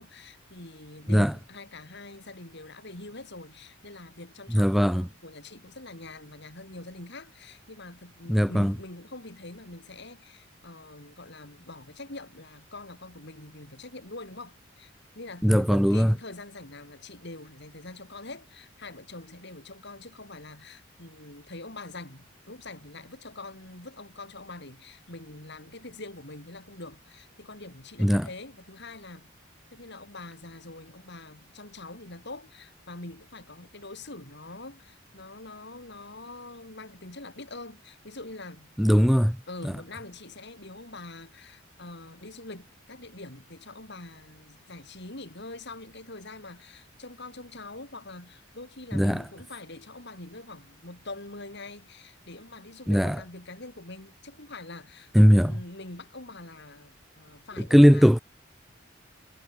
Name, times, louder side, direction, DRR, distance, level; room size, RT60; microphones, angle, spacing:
voice 1, 0.0-29.3 29.7-38.7 39.5-58.1, left 2 dB, 55° left, 4.9 m, -44 dB
voice 2, 4.5-5.1 8.3-8.7 15.4-16.1 28.0-28.3 38.8-39.4 39.6-39.7 48.9-49.2 52.9-53.2 55.1-55.6 57.6-58.2, equal, ahead, 0.6 m, -19 dB
head